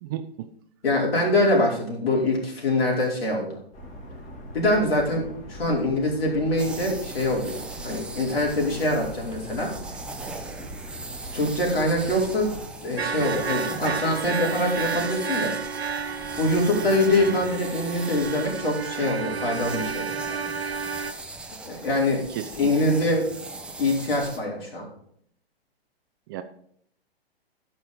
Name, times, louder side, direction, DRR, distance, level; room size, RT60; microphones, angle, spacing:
voice 1, 0.0-0.5 22.1-23.0 26.3-26.4, right 11 dB, 20° right, 9 dB, 0.4 m, -35 dB
voice 2, 0.8-3.5 4.5-7.6 7.8-9.7 11.3-12.5 12.8-15.5 16.4-20.0 21.6-22.2 22.6-23.3 23.8-24.8, left 1 dB, 65° left, -1 dB, 4.6 m, -24 dB
sound 1, 3.7-12.6, right 1 dB, 25° left, 2.8 m, -41 dB
sound 2, 6.6-24.4, right 2 dB, 5° right, 0.8 m, -39 dB
sound 3, 9.3-9.4 9.7-10.0 10.5-10.6 12.3-12.4 13.0-21.1, right 6 dB, 80° right, 1.2 m, -31 dB
13.0 x 5.6 x 5.2 m, 0.67 s
figure-of-eight pair, 120°, 31 cm